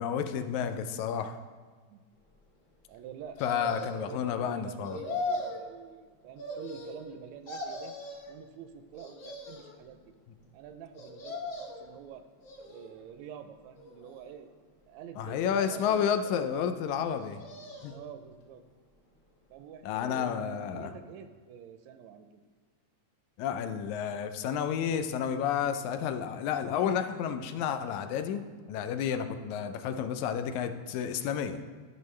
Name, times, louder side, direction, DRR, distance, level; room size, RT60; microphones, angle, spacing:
voice 1, 0.0-1.4 3.4-5.0 15.2-17.4 17.8-17.9 19.8-20.9 23.4-28.4 28.7-31.6, left 8 dB, 85° left, 8 dB, 2.0 m, -31 dB
voice 2, 2.9-7.9 8.3-10.1 10.5-12.2 12.6-14.5 14.9-16.7 17.9-18.6 19.5-22.5, right 8 dB, 80° right, 8 dB, 1.7 m, -47 dB
sound 1, 3.4-4.2 4.8-5.6 6.4-7.2 7.5-8.3 8.9-9.8 10.9-11.9 12.4-13.1 13.7-14.5 15.5-16.4 17.1-18.0 18.4-18.5, left 2 dB, 55° left, 2.7 m, -39 dB
12.0 x 6.2 x 3.2 m, 1.5 s
omnidirectional pair, 3.3 m